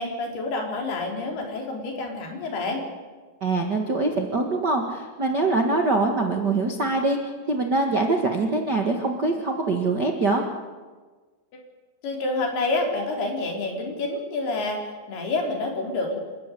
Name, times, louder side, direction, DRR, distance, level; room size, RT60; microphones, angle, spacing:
voice 1, 0.0-2.8 12.0-14.8 15.1-16.2, left 2 dB, 75° left, 1 dB, 5.7 m, -28 dB
voice 2, 3.4-7.2 7.5-10.4, right 3 dB, 45° right, 2 dB, 1.3 m, -23 dB
27.5 x 13.5 x 9.9 m, 1.4 s
omnidirectional pair, 4.6 m